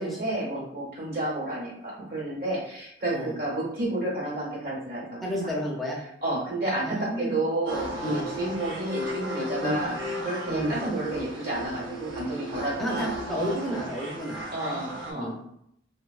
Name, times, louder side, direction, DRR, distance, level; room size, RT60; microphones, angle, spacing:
voice 1, 0.0-5.6 6.2-9.9 10.2-13.1 14.5-15.4, right 1 dB, 55° right, -4 dB, 1.0 m, -31 dB
voice 2, 5.2-6.0 6.8-7.3 8.0-8.3 9.6-9.7 10.5-10.7 12.8-14.6 15.1-15.4, equal, ahead, -4 dB, 0.5 m, -31 dB
sound 1, 7.6-15.1, right 1 dB, 70° right, 0.6 m, -35 dB
2.6 x 2.0 x 2.3 m, 0.73 s
head